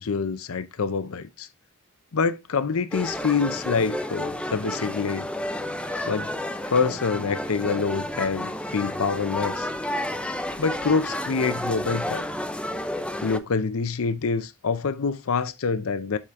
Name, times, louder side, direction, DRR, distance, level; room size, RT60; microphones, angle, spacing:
voice 1, 0.0-1.5 2.1-5.3 6.1-6.3 6.7-9.7 10.6-12.2 13.2-16.2, left 5 dB, 65° left, 0.6 m, -26 dB
sound 1, 2.9-13.4, left 1 dB, 5° left, 0.5 m, -31 dB
7.1 x 4.9 x 3.5 m
head